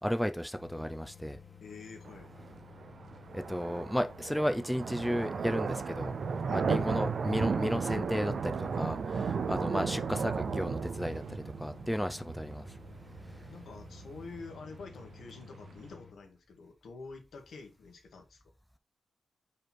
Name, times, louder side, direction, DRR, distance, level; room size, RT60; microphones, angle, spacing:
voice 1, 0.0-1.4 3.3-6.1 6.5-12.8 13.3-13.5, equal, ahead, 0.5 m, -33 dB
sound 1, 0.5-16.1, left 7 dB, 30° left, 1.4 m, -54 dB
voice 2, 1.6-2.3 6.4-6.7 13.5-18.4, left 4 dB, 80° left, 1.7 m, -48 dB
sound 2, 2.0-16.0, right 5 dB, 65° right, 0.5 m, -35 dB
5.2 x 4.3 x 4.5 m
cardioid pair, 90°, 0 cm